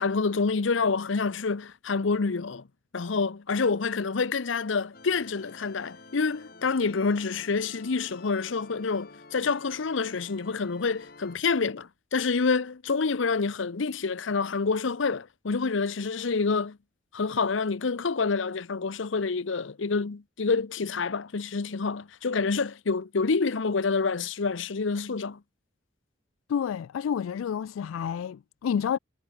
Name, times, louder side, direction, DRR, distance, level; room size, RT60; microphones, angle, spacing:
voice 1, 0.0-2.6 2.9-16.8 17.1-25.4, left 4 dB, 70° left, 0.7 m, -27 dB
sound 1, 4.9-11.4, left 3 dB, 50° left, 2.7 m, -50 dB
voice 2, 26.5-29.0, left 7 dB, 90° left, 0.3 m, -29 dB
head